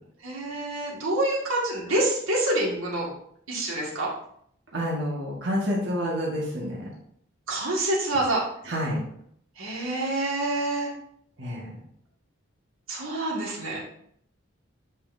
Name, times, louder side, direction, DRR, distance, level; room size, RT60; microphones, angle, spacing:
voice 1, 0.2-3.1 3.5-4.1 7.5-8.4 9.6-10.9 12.9-13.8, right 1 dB, 80° right, -4 dB, 2.1 m, -27 dB
voice 2, 4.7-6.8 8.7-9.0 11.4-11.6, equal, 60° right, -5 dB, 1.8 m, -28 dB
8.5 x 5.6 x 2.7 m, 0.68 s
head